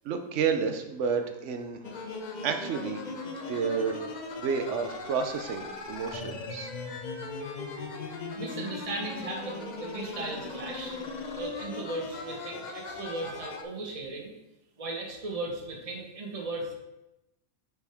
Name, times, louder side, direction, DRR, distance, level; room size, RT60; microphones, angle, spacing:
voice 1, 0.0-1.8 2.4-3.0 3.5-4.0 4.4-6.7, right 6 dB, 60° right, 6 dB, 1.0 m, -30 dB
sound 1, 1.8-13.6, left 3 dB, 60° left, 0.4 m, -38 dB
voice 2, 8.3-11.0 11.2-14.3 14.8-16.7, right 2 dB, 25° right, 0 dB, 1.2 m, -37 dB
9.2 x 4.8 x 3.5 m, 0.94 s
omnidirectional pair, 1.6 m